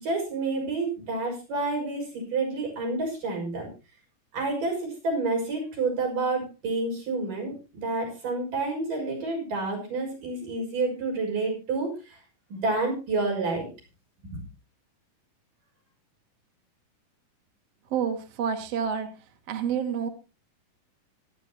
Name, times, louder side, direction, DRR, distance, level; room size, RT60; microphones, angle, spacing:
voice 1, 0.0-3.7 4.3-12.2 12.5-13.7 14.2-14.4, right 3 dB, 90° right, 0 dB, 7.8 m, -29 dB
voice 2, 17.9-19.1 19.5-20.1, right 7 dB, 60° right, 6 dB, 2.4 m, -28 dB
25.0 x 9.6 x 3.0 m, 0.29 s
omnidirectional pair, 3.7 m